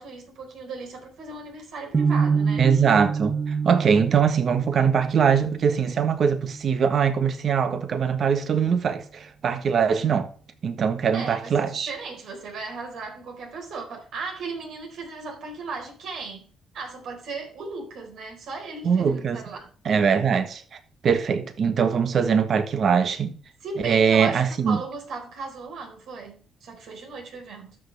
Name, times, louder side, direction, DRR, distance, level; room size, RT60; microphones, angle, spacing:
voice 1, 0.0-2.7 11.1-19.7 23.6-27.8, right 4 dB, 75° right, 4.4 m, -36 dB
sound 1, 1.9-8.0, right 5 dB, 35° right, 0.7 m, -28 dB
voice 2, 2.6-3.3 3.6-10.3 10.6-11.9 18.8-19.4 19.8-20.6 21.0-23.3 23.8-24.8, right 6 dB, 55° right, 1.4 m, -22 dB
12.5 x 6.5 x 3.4 m
cardioid pair, 90°, 0 cm